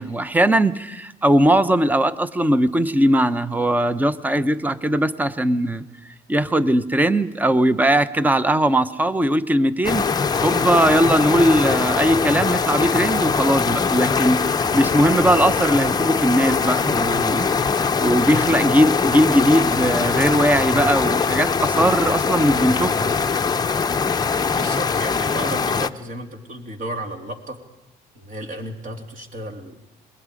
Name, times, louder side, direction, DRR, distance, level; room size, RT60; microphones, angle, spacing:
voice 1, 0.0-5.8 6.3-10.0 10.4-23.1, right 1 dB, 10° right, 13 dB, 0.8 m, -19 dB
sound 1, 9.8-25.9, left 5 dB, 25° left, 0.7 m, -22 dB
voice 2, 24.6-27.6 28.2-29.8, right 1 dB, 50° right, 3 dB, 3.4 m, -33 dB
27.0 x 21.5 x 5.1 m, 0.95 s
cardioid pair, 110°, 17 cm